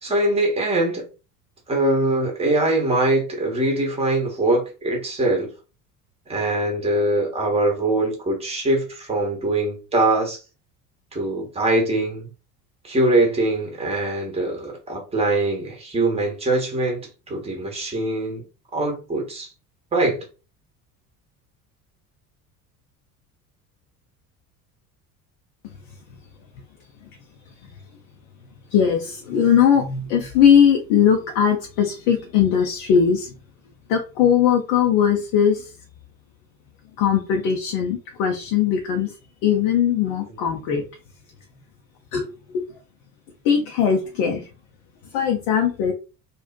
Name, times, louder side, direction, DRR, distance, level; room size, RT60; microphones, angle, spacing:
voice 1, 0.0-1.1 1.7-5.5 6.3-10.4 11.1-12.3 12.8-18.4 18.7-19.5 19.9-20.3, right 2 dB, 15° right, 0.9 m, -22 dB
voice 2, 28.7-33.3 33.9-35.7 37.0-39.1 39.4-40.8 42.1-42.3 42.5-42.6 43.4-44.5 45.1-45.9, left 8 dB, 50° left, 0.6 m, -19 dB
2.6 x 2.1 x 2.4 m
figure-of-eight pair, 65°, 46 cm